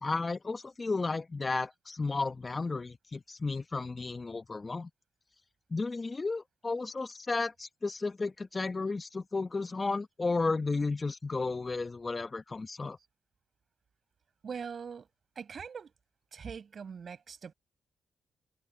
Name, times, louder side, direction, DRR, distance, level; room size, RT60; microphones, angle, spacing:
voice 1, 0.0-4.9 5.7-13.0, left 3 dB, 35° left, 1.2 m, -33 dB
voice 2, 14.4-15.1 15.4-15.9 16.3-17.5, right 6 dB, 55° right, 5.7 m, -42 dB
supercardioid pair, 60°, 0 cm